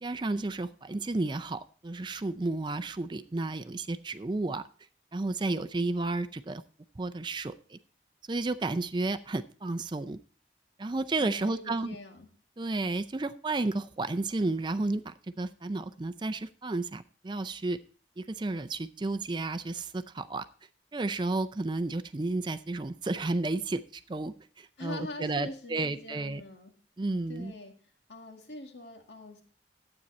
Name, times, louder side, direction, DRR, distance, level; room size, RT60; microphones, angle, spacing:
voice 1, 0.0-4.6 5.1-6.6 7.0-7.8 8.3-10.2 10.8-12.0 12.6-17.8 18.2-20.5 20.9-26.4 27.0-27.5, right 2 dB, 25° right, 11 dB, 0.4 m, -32 dB
voice 2, 11.2-12.3 24.8-26.7 27.3-27.8 28.1-29.4, left 1 dB, 80° left, 3 dB, 1.8 m, -43 dB
12.0 x 8.8 x 4.2 m, 0.42 s
head